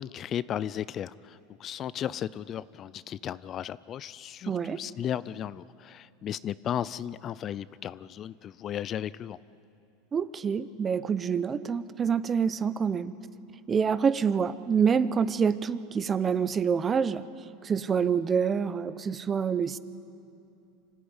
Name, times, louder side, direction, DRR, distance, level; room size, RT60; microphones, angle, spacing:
voice 1, 0.0-9.4, left 10 dB, 35° left, 18 dB, 0.4 m, -35 dB
voice 2, 4.5-4.8 10.1-13.2 13.7-17.2 17.6-19.8, right 6 dB, 25° right, 15 dB, 0.8 m, -26 dB
26.0 x 14.0 x 9.7 m, 2.7 s
supercardioid pair, 115°, 0 cm